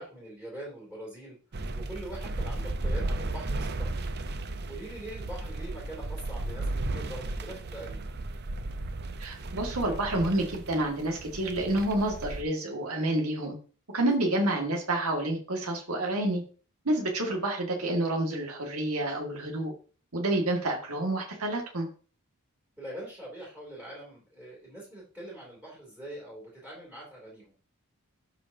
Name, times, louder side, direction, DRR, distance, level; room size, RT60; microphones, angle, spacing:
voice 1, 0.0-1.4 1.7-4.1 4.7-8.0 14.2-14.3 22.8-27.5, right 1 dB, 5° right, -4 dB, 2.9 m, -43 dB
sound 1, 1.5-12.4, right 2 dB, 50° right, 0.7 m, -35 dB
voice 2, 9.2-13.5 13.9-16.4 16.9-19.7 20.1-21.9, right 1 dB, 85° right, 0 dB, 1.9 m, -29 dB
12.0 x 5.1 x 2.8 m, 0.38 s
head